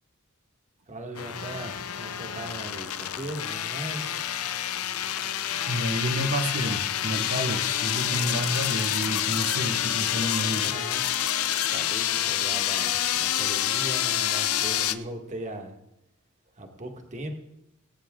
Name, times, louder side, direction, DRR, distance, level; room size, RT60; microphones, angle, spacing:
voice 1, 0.9-4.2 10.1-11.0 11.7-15.8 16.6-17.3, right 1 dB, 35° right, 3 dB, 1.8 m, -38 dB
sound 1, 1.1-14.9, left 11 dB, 80° left, 0.7 m, -28 dB
voice 2, 5.6-10.6, equal, 80° right, 3 dB, 1.6 m, -30 dB
21.5 x 9.6 x 3.8 m, 0.87 s
head